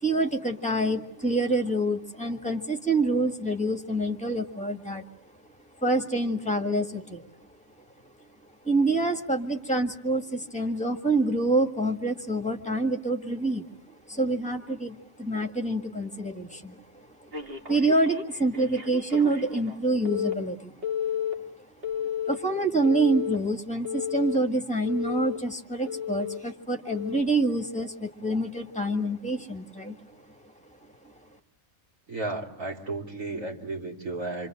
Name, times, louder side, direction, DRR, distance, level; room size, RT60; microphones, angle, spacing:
voice 1, 0.0-5.0 5.8-7.3 8.6-13.7 14.1-20.9 21.6-21.7 22.3-30.2, right 2 dB, 5° left, 4 dB, 1.8 m, -27 dB
Telephone, 17.3-19.8 20.1-20.3 20.8-21.3 21.8-22.3 22.8-23.4 23.8-24.4 24.9-25.4 25.9-26.4 26.9-27.2, left 8 dB, 45° right, 2.3 m, -32 dB
voice 2, 32.1-34.5, right 2 dB, 75° right, 0 dB, 3.8 m, -33 dB
27.0 x 26.0 x 7.8 m, 0.72 s
omnidirectional pair, 1.4 m